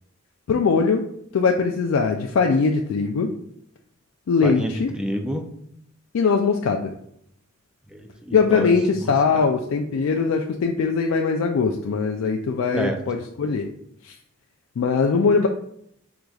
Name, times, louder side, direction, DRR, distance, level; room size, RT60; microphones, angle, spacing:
voice 1, 0.5-1.1 1.3-3.3 4.3-4.9 6.1-6.9 8.3-13.7 14.0-14.1 14.8-15.5, left 5 dB, 85° left, 3 dB, 0.4 m, -21 dB
voice 2, 4.4-5.5 7.9-9.5 12.7-13.0, equal, 5° right, 4 dB, 0.4 m, -30 dB
4.7 x 3.9 x 2.3 m, 0.70 s
head